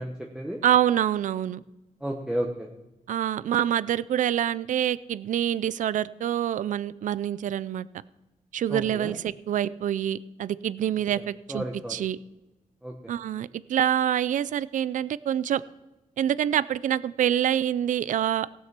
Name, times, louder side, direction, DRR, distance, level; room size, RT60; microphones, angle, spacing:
voice 1, 0.0-0.6 2.0-2.7 8.7-9.2 11.5-11.9 12.8-12.9, right 1 dB, 5° right, 0 dB, 0.9 m, -32 dB
voice 2, 0.6-1.6 3.1-7.9 8.5-12.2 13.1-15.6 16.2-18.5, right 10 dB, 65° right, 18 dB, 0.4 m, -26 dB
17.5 x 6.4 x 5.9 m, 1.1 s
wide cardioid pair, 155°, 14 cm